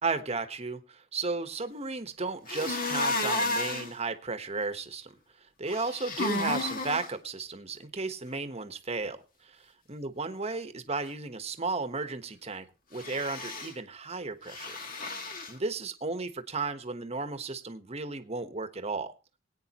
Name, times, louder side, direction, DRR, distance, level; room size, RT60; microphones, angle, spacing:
voice 1, 0.0-5.1 5.6-9.6 9.9-12.7 12.9-14.8 15.5-19.1, right 3 dB, 35° right, 9 dB, 1.2 m, -34 dB
sound 1, 2.5-3.9 5.7-7.1 13.0-13.7 14.5-15.5, left 2 dB, 50° left, 1.9 m, -32 dB
20.0 x 9.3 x 3.0 m, 0.30 s
head